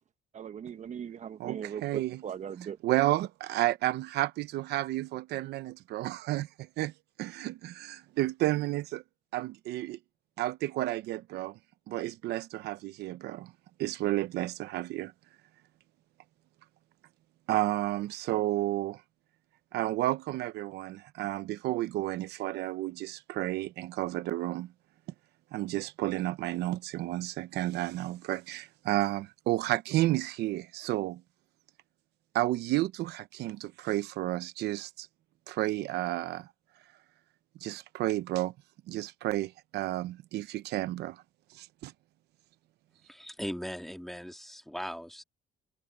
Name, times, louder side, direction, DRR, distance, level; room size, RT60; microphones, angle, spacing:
voice 1, 0.3-2.8, right 8 dB, 45° right, 1.1 m, -39 dB
voice 2, 1.4-2.2 2.8-6.9 7.2-9.0 9.3-10.0 10.4-11.6 11.9-13.5 13.8-15.1 17.5-19.0 19.7-24.7 25.5-31.2 32.3-35.1 35.5-36.5 37.6-38.5 38.9-41.2 41.5-41.9, right 16 dB, 75° right, 0.8 m, -31 dB
voice 3, 43.1-45.2, equal, ahead, 2.1 m, -39 dB
cardioid pair, 110°, 17 cm